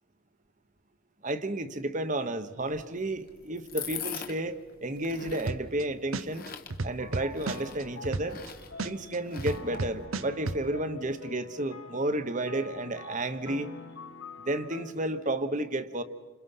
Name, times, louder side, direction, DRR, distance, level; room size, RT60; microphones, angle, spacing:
voice 1, 1.2-6.5 6.8-8.4 8.8-13.7 14.5-16.0, right 1 dB, 35° right, 11 dB, 1.2 m, -32 dB
sound 1, 2.6-10.1, left 8 dB, 45° left, 1.4 m, -44 dB
sound 2, 5.5-5.8 6.1-8.5 8.8-10.6, right 3 dB, 75° right, 0.8 m, -32 dB
sound 3, 7.0-14.9, left 3 dB, 65° left, 1.8 m, -46 dB
29.5 x 26.5 x 5.7 m, 1.3 s
head